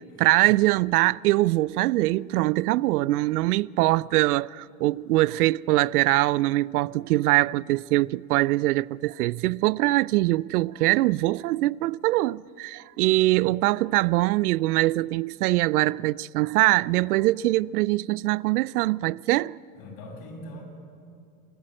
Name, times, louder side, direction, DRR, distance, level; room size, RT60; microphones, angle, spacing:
voice 1, 0.2-19.6, right 18 dB, 80° right, 0.5 m, -23 dB
voice 2, 19.7-20.6, left 1 dB, 50° left, 6.8 m, -41 dB
28.5 x 13.0 x 7.8 m
supercardioid pair, 120°, 44 cm